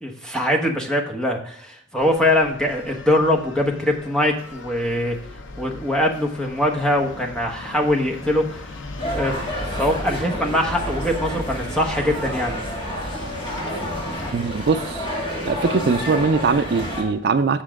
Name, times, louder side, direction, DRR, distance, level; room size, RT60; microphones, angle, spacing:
voice 1, 0.0-5.2 5.6-9.3 9.7-12.5, left 1 dB, 5° left, 0 dB, 1.1 m, -22 dB
sound 1, 2.0-14.3, left 3 dB, 90° left, 0.7 m, -39 dB
sound 2, 9.0-17.0, equal, 25° left, 2.2 m, -29 dB
voice 2, 14.3-15.1 15.4-17.6, right 4 dB, 55° right, 10 dB, 0.4 m, -21 dB
7.3 x 7.0 x 3.6 m, 0.66 s
head